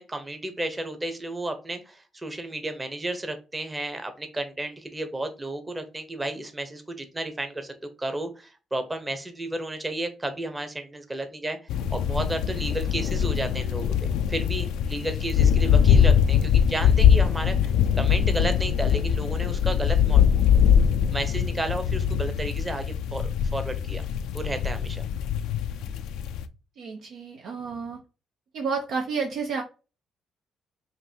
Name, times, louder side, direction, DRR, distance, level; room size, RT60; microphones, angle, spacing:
voice 1, 0.0-11.6 11.9-20.2 21.1-24.0 24.3-25.0, right 1 dB, 20° right, 7 dB, 0.9 m, -32 dB
sound 1, 11.7-26.4, left 8 dB, 90° left, 0.3 m, -22 dB
voice 2, 26.8-28.0 28.5-29.6, right 5 dB, 75° right, 2 dB, 0.7 m, -30 dB
5.2 x 2.6 x 2.8 m, 0.31 s
cardioid pair, 90°, 0 cm